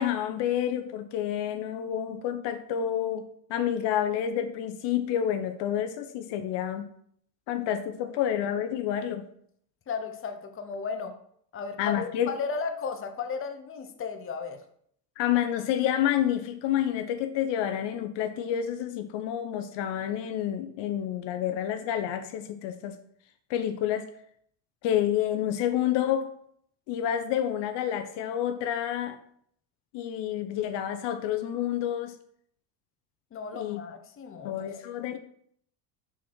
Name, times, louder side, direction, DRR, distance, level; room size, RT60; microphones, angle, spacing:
voice 1, 0.0-3.2 3.5-6.9 7.5-9.3 11.8-12.3 15.2-23.0 23.5-24.1 24.8-26.3 26.9-29.2 29.9-32.1 33.5-33.8 34.4-35.2, left 10 dB, 60° left, 8 dB, 0.8 m, -29 dB
voice 2, 9.9-11.1 11.5-14.6 33.3-34.7, left 5 dB, 25° left, 6 dB, 0.9 m, -35 dB
5.5 x 5.1 x 4.4 m, 0.65 s
supercardioid pair, 95°, 48 cm